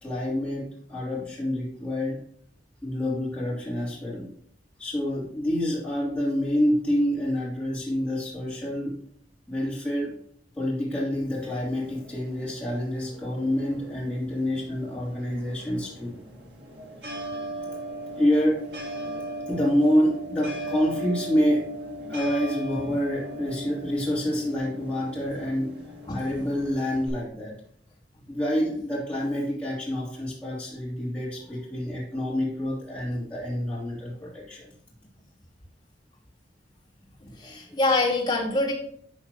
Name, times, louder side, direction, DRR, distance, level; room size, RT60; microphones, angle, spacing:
voice 1, 0.0-2.2 2.8-4.3 4.8-8.9 9.5-10.1 10.5-16.2 18.1-18.7 19.5-27.5 28.3-34.6 37.4-37.8, equal, 5° left, -8 dB, 3.1 m, -27 dB
sound 1, 11.1-27.1, equal, 75° right, 1.9 m, -38 dB
voice 2, 37.4-38.7, left 2 dB, 25° left, -5 dB, 2.2 m, -24 dB
12.5 x 4.2 x 3.0 m, 0.64 s
head